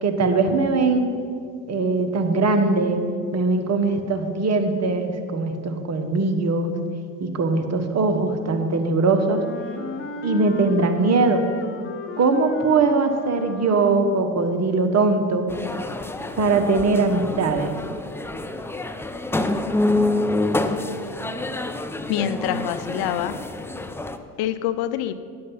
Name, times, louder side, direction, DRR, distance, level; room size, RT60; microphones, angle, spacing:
voice 1, 0.0-1.1 1.7-3.0 3.3-6.8 7.2-9.4 10.2-11.5 12.2-15.5 16.4-17.7, right 3 dB, 40° right, 7 dB, 1.3 m, -21 dB
Wind instrument woodwind instrument, 9.2-14.3, left 4 dB, 30° left, 1.1 m, -35 dB
sound 1, 15.5-24.2, left 2 dB, 5° left, 0.5 m, -27 dB
voice 2, 22.1-23.4 24.4-25.1, left 10 dB, 60° left, 13 dB, 0.7 m, -25 dB
11.0 x 7.7 x 5.5 m, 2.3 s
supercardioid pair, 80°, 42 cm